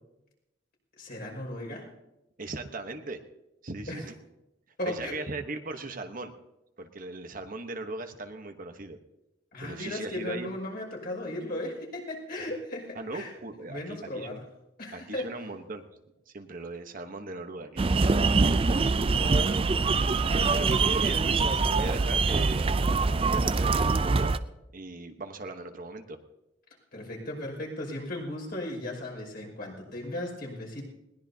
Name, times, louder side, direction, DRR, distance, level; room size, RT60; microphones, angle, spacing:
voice 1, 1.0-1.8 3.9-4.0 4.8-5.2 9.5-13.3 13.7-14.4 14.8-15.3 26.9-30.8, left 1 dB, 55° left, -1 dB, 5.6 m, -36 dB
voice 2, 2.4-3.2 3.6-4.1 4.9-6.3 6.8-9.0 9.6-10.5 12.9-14.4 14.9-15.8 16.3-18.4 19.1-19.5 20.3-22.7 23.2-24.4 24.7-26.2, right 2 dB, 45° right, 6 dB, 1.1 m, -38 dB
sound 1, 17.8-24.4, right 4 dB, 30° right, 0.4 m, -24 dB
21.0 x 18.5 x 2.8 m, 0.91 s
head